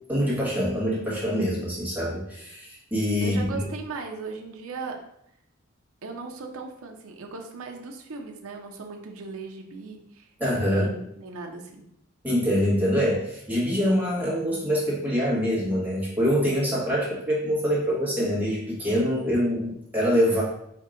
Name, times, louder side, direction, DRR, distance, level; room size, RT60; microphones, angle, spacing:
voice 1, 0.1-3.4 10.4-10.9 12.2-20.4, equal, 10° right, -7 dB, 1.3 m, -25 dB
voice 2, 3.2-5.0 6.0-10.3 10.6-11.8, right 4 dB, 75° right, 2 dB, 0.6 m, -37 dB
4.6 x 2.7 x 3.7 m, 0.75 s
head